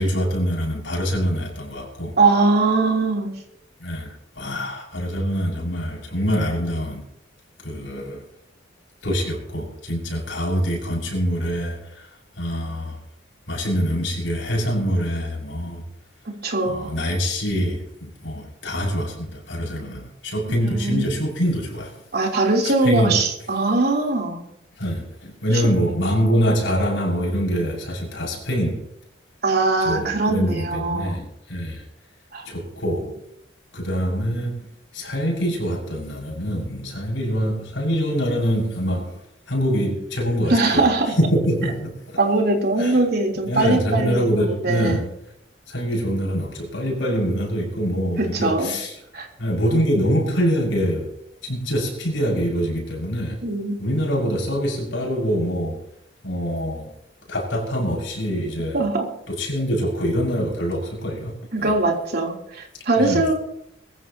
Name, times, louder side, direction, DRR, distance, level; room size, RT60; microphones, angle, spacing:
voice 1, 0.0-2.1 3.8-7.0 7.6-8.2 9.0-12.1 12.4-13.0 13.5-15.8 16.7-22.0 22.6-23.2 24.8-28.9 29.8-31.8 32.4-33.2 33.7-34.7 34.9-39.2 39.5-40.9 41.2-42.2 42.8-43.0 43.5-45.1 45.7-49.0 49.4-51.1 51.4-53.4 53.8-55.8 56.2-56.9 57.3-58.9 59.3-61.7 63.0-63.2, equal, 85° left, -1 dB, 6.4 m, -24 dB
voice 2, 2.2-3.3 16.3-16.9 20.6-21.1 22.1-24.4 29.4-31.2 32.3-32.5 40.5-41.1 42.2-44.3 44.6-45.1 48.2-48.7 49.1-49.3 53.4-53.8 58.7-59.1 61.5-63.3, right 3 dB, 55° right, 1 dB, 3.6 m, -21 dB
22.0 x 15.5 x 3.0 m, 0.76 s
head